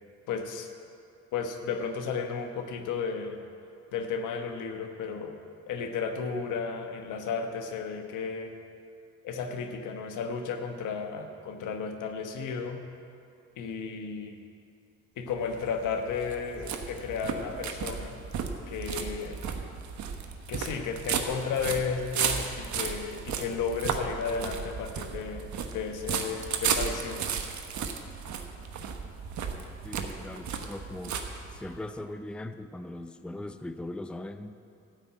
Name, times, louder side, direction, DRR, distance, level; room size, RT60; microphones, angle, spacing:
voice 1, 0.3-0.7 1.3-3.4 3.9-5.4 5.7-8.5 9.2-12.8 13.6-14.4 15.2-18.2 18.7-19.4 20.5-25.5 25.7-27.2, left 5 dB, 85° left, 5 dB, 1.2 m, -33 dB
sound 1, 15.3-31.8, right 6 dB, 70° right, 1.1 m, -34 dB
voice 2, 29.8-31.2 31.5-34.6, left 1 dB, 5° left, 9 dB, 0.5 m, -40 dB
13.0 x 6.2 x 8.6 m, 2.5 s
cardioid pair, 90°, 30 cm